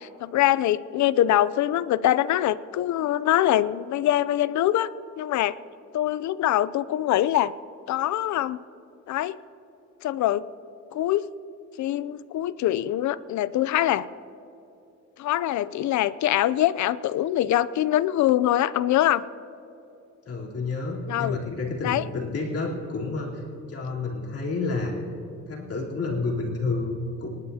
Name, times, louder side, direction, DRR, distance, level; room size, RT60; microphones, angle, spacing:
voice 1, 0.0-4.9 5.2-5.6 5.9-7.5 7.9-8.6 9.1-9.4 10.0-10.5 10.9-11.3 11.8-14.1 15.2-19.2 21.1-21.4 21.8-22.0, left 13 dB, 70° left, 17 dB, 0.5 m, -23 dB
voice 2, 20.3-24.9 25.5-27.3, left 3 dB, 50° left, -4 dB, 3.5 m, -30 dB
26.5 x 12.0 x 2.8 m, 2.8 s
cardioid pair, 90°, 30 cm